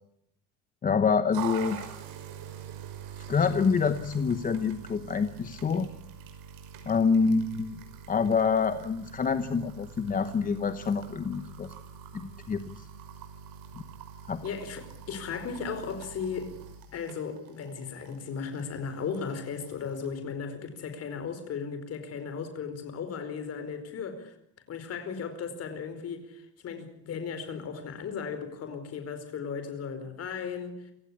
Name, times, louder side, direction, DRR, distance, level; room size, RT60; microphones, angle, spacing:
voice 1, 0.8-1.8 3.3-5.9 6.9-7.8 8.1-11.7 12.1-12.9 13.7-13.8 14.3-14.4, left 5 dB, 20° left, 1.0 m, -26 dB
sound 1, 1.3-20.1, right 8 dB, 60° right, 5.8 m, -45 dB
voice 2, 14.4-16.5 16.9-24.3 24.7-30.9, left 6 dB, 40° left, 4.8 m, -36 dB
28.0 x 17.0 x 8.6 m
cardioid pair, 155°, 39 cm